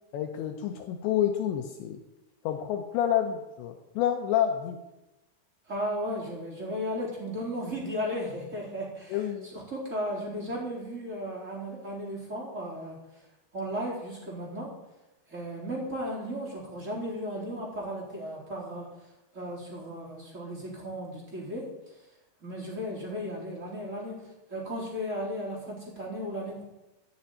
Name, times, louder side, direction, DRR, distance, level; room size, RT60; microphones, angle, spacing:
voice 1, 0.1-2.0 2.4-4.8 9.1-9.5, left 10 dB, 80° left, 4 dB, 3.0 m, -28 dB
voice 2, 5.7-9.2 9.5-13.0 13.5-14.8 15.3-18.9 19.3-21.7 22.4-26.6, equal, 15° right, -4 dB, 4.0 m, -35 dB
14.0 x 7.1 x 9.6 m, 0.99 s
omnidirectional pair, 5.4 m